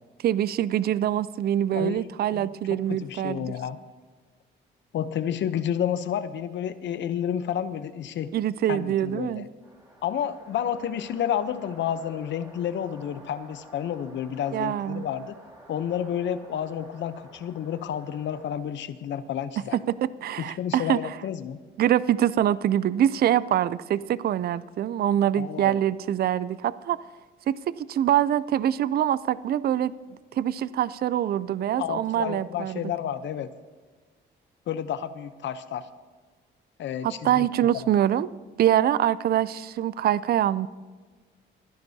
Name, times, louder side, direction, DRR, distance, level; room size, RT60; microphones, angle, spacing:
voice 1, 0.2-3.5 8.3-9.5 14.5-15.0 19.9-21.0 21.8-27.0 27.5-29.9 30.3-32.9 37.0-38.3 38.6-40.7, right 11 dB, 50° right, 18 dB, 0.4 m, -24 dB
voice 2, 2.3-3.8 4.9-8.3 8.7-9.5 10.0-15.4 15.7-19.8 20.4-21.6 25.4-25.8 31.8-33.5 34.7-35.9 36.8-37.5 37.7-37.9, left 9 dB, 65° left, 13 dB, 0.8 m, -30 dB
sound 1, 9.6-18.6, right 1 dB, 15° right, 3.5 m, -51 dB
25.5 x 10.5 x 2.8 m, 1.4 s
cardioid pair, 90°, 20 cm